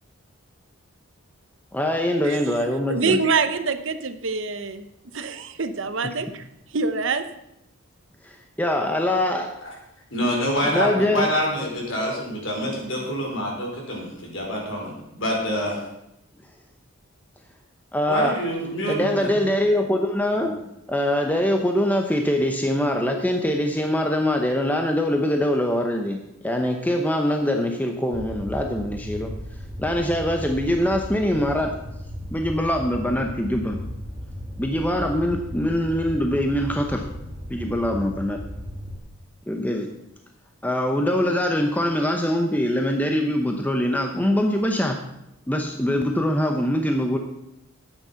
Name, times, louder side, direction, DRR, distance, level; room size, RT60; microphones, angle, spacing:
voice 1, 1.7-3.2 8.2-9.5 10.6-11.3 17.9-18.3 18.9-20.5 20.9-26.2 26.4-29.3 29.8-31.7 32.3-33.8 34.6-37.1 37.5-38.4 39.5-39.9 40.6-45.0 45.5-47.2, left 1 dB, 10° left, 3 dB, 0.8 m, -23 dB
voice 2, 2.9-4.9 5.1-6.4 6.7-7.2, right 4 dB, 60° right, 10 dB, 0.8 m, -25 dB
voice 3, 10.1-15.8 18.1-19.3 20.4-20.5, equal, 60° left, -1 dB, 4.4 m, -26 dB
Fire, 28.1-39.0, equal, 25° right, 1.9 m, -35 dB
12.0 x 9.2 x 5.7 m, 0.84 s
head